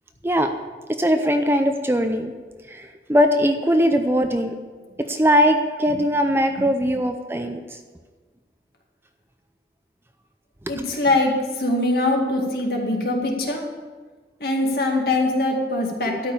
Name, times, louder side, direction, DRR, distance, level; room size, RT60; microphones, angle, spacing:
voice 1, 1.0-2.3 2.7-4.5 5.0-7.8 14.9-15.0, equal, 15° right, 7 dB, 0.5 m, -20 dB
voice 2, 10.7-13.6 14.4-16.3, left 2 dB, 60° left, 0 dB, 2.1 m, -22 dB
12.5 x 5.4 x 8.6 m, 1.4 s
head